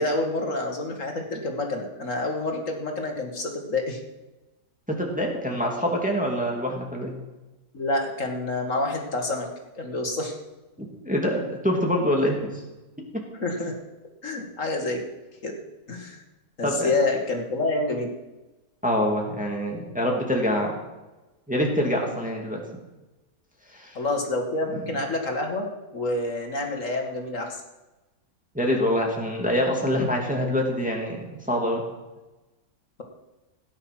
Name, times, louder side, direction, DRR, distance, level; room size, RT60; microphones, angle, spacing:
voice 1, 0.0-4.0 7.7-9.5 9.8-10.4 13.4-13.8 14.2-15.0 15.4-15.6 15.9-16.2 16.6-18.1 23.9-25.7 25.9-27.6, left 2 dB, 55° left, 3 dB, 2.4 m, -28 dB
voice 2, 4.9-7.1 10.8-12.6 16.6-16.9 18.8-20.8 21.5-22.6 23.7-24.0 24.7-24.8 28.5-31.8, equal, 5° right, -1 dB, 2.4 m, -25 dB
17.0 x 10.0 x 6.0 m, 1.1 s
omnidirectional pair, 1.6 m